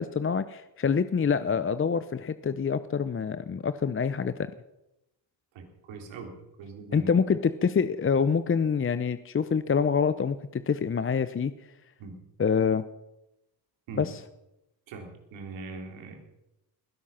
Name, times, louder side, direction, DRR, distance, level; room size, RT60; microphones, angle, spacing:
voice 1, 0.0-4.5 6.9-11.5 12.4-12.8 14.0-14.2, left 6 dB, 30° left, 13 dB, 0.8 m, -26 dB
voice 2, 5.5-7.1 12.0-12.2 13.9-14.1 14.9-16.2, right 3 dB, 80° right, 3 dB, 3.6 m, -41 dB
20.0 x 11.5 x 5.7 m, 0.91 s
supercardioid pair, 60°, 45 cm